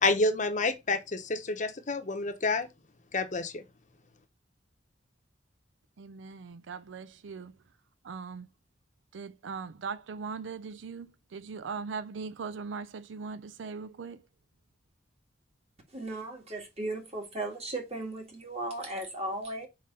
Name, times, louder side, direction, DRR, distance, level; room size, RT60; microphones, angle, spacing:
voice 1, 0.0-2.7 3.1-3.6, left 3 dB, 40° left, 0.8 m, -28 dB
voice 2, 6.0-7.5 8.0-8.5 9.1-14.2, right 5 dB, 75° right, 0.4 m, -40 dB
voice 3, 15.9-19.7, right 2 dB, 35° right, 1.9 m, -36 dB
5.0 x 3.8 x 5.5 m
head